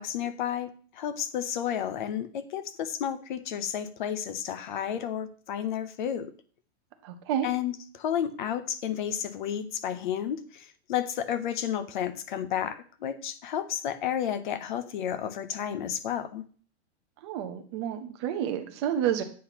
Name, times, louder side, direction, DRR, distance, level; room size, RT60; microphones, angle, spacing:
voice 1, 0.0-6.3 7.4-16.4, left 9 dB, 45° left, 13 dB, 0.6 m, -32 dB
voice 2, 7.0-7.5 17.2-19.2, right 10 dB, 25° right, 6 dB, 0.6 m, -29 dB
8.4 x 2.9 x 5.7 m, 0.43 s
supercardioid pair, 180°, 33 cm